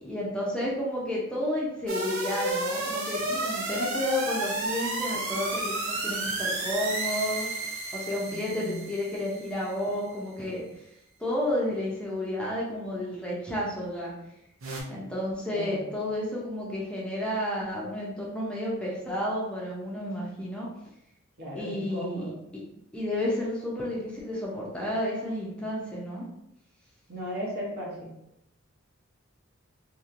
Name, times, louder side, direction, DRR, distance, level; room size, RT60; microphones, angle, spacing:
voice 1, 0.0-10.9 11.2-14.1 14.9-20.7 21.5-22.3 22.9-26.2, left 1 dB, 5° left, -5 dB, 0.5 m, -31 dB
sound 1, 1.9-9.7 14.6-14.8, right 2 dB, 80° right, 0.7 m, -31 dB
voice 2, 8.3-8.8 15.5-15.9 21.4-22.3 27.1-28.1, equal, 50° right, -4 dB, 1.0 m, -36 dB
3.0 x 2.8 x 2.5 m, 0.81 s
head